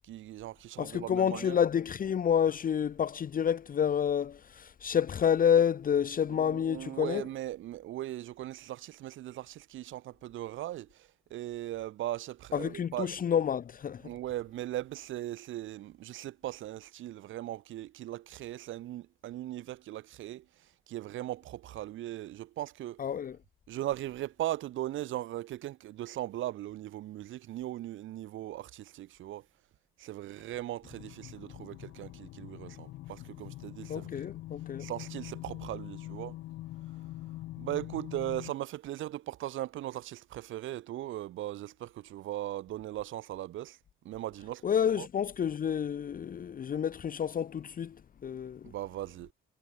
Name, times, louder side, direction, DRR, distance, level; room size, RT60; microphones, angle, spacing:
voice 1, 0.0-1.6 6.3-13.2 14.0-23.0 23.7-29.5 30.0-34.3 34.8-36.4 37.6-43.8 44.0-44.6 45.0-45.1 48.6-49.3, right 14 dB, 80° right, 1.7 m, -39 dB
voice 2, 0.8-7.2 12.5-14.1 23.0-23.4 33.9-34.9 44.6-48.0 48.2-48.7, left 8 dB, 45° left, 0.9 m, -29 dB
sound 1, 30.8-38.5, left 15 dB, 90° left, 5.2 m, -44 dB
cardioid pair, 90°, 20 cm